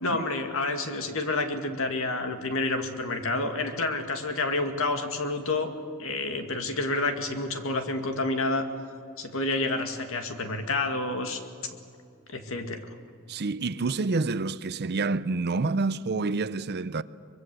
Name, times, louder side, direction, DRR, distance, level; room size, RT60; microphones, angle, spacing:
voice 1, 0.0-8.7 9.2-11.4 12.3-12.8, left 2 dB, 65° left, 2.2 m, -29 dB
voice 2, 13.3-17.0, right 3 dB, 50° right, 0.6 m, -28 dB
24.0 x 22.5 x 7.9 m
head